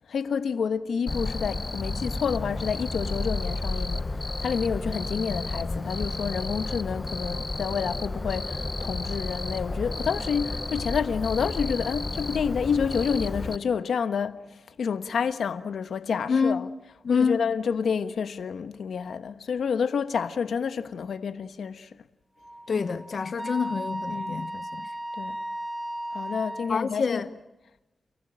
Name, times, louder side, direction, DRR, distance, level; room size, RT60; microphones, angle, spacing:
voice 1, 0.1-14.4 14.8-16.7 17.1-21.9 24.1-24.4 25.2-25.4 26.1-27.2, left 6 dB, 80° left, 1.2 m, -29 dB
Cricket, 1.1-13.6, left 2 dB, 30° left, 0.8 m, -32 dB
voice 2, 16.3-16.6 17.0-17.4 22.7-24.9 26.7-27.3, left 5 dB, 60° left, 0.9 m, -27 dB
Wind instrument woodwind instrument, 22.4-26.7, right 1 dB, 10° right, 1.4 m, -35 dB
29.5 x 19.0 x 8.9 m
wide cardioid pair, 95°, 0 cm